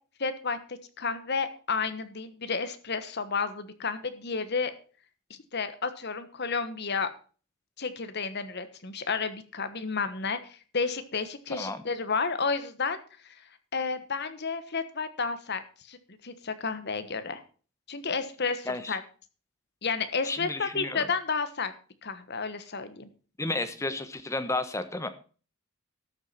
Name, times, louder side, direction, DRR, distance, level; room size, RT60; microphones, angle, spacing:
voice 1, 0.2-4.7 5.3-7.1 7.8-13.3 13.7-16.0 16.2-17.4 17.9-19.0 19.8-21.7 22.0-23.1, left 4 dB, 50° left, 11 dB, 1.3 m, -31 dB
voice 2, 11.5-11.8 18.7-19.0 20.2-21.0 23.4-25.1, left 2 dB, 15° left, 10 dB, 1.1 m, -32 dB
12.5 x 7.3 x 5.8 m, 0.38 s
head